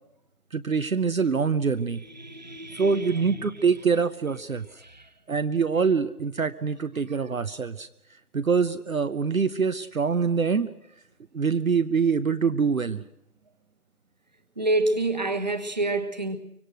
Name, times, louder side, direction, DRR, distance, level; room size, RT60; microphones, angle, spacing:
voice 1, 0.5-2.0 2.7-4.8 5.3-7.9 8.3-10.7 11.3-13.0, right 5 dB, 55° right, 11 dB, 0.8 m, -24 dB
voice 2, 1.9-3.7 4.8-5.1 14.6-16.4, right 2 dB, 25° right, 8 dB, 1.2 m, -28 dB
24.5 x 24.5 x 6.3 m, 0.82 s
figure-of-eight pair, 175°, 48 cm